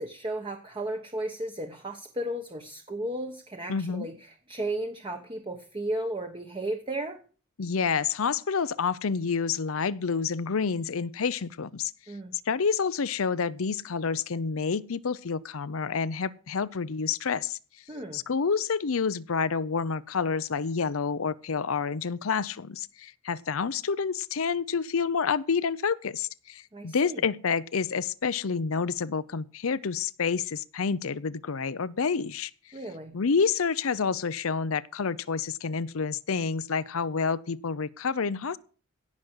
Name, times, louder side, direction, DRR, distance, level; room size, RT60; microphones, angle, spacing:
voice 1, 0.0-7.2 12.1-12.3 17.9-18.2 26.7-27.2 32.7-33.2, right 1 dB, 25° right, 1.2 m, -34 dB
voice 2, 3.7-4.1 7.6-11.9 12.5-17.6 18.1-32.5 33.1-38.6, left 5 dB, 70° left, 0.6 m, -28 dB
17.0 x 6.1 x 7.9 m
head